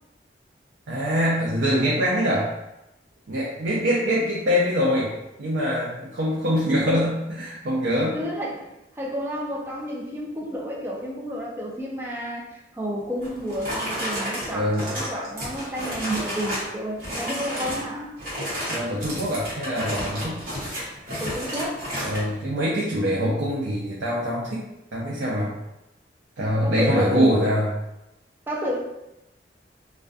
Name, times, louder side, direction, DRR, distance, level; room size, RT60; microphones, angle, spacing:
voice 1, 0.9-2.5 3.3-5.1 5.4-8.2 14.5-14.9 18.7-20.4 22.0-24.6 24.9-25.5 26.4-27.7, equal, 85° right, -5 dB, 0.5 m, -24 dB
voice 2, 8.1-8.7 9.0-12.4 12.7-18.2 21.2-21.9 26.6-27.3 28.5-28.8, equal, 10° right, -3 dB, 0.4 m, -30 dB
sound 1, 13.2-16.7 17.0-17.9 18.2-22.2, equal, 50° right, 0.9 m, -31 dB
2.5 x 2.2 x 2.3 m, 0.91 s
head